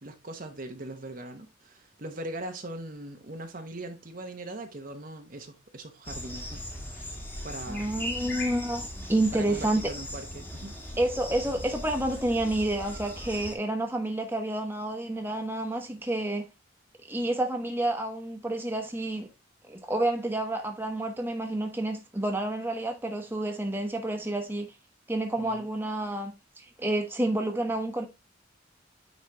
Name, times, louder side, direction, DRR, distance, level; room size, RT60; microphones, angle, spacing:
voice 1, 0.0-7.9 9.3-10.7 25.4-25.7, right 1 dB, 45° right, 1.0 m, -41 dB
sound 1, 6.0-13.5, left 1 dB, 10° left, 1.6 m, -38 dB
voice 2, 7.7-9.8 11.0-16.5 17.1-19.3 19.7-24.7 25.1-28.1, right 1 dB, 10° right, 1.1 m, -29 dB
9.4 x 4.1 x 3.0 m
head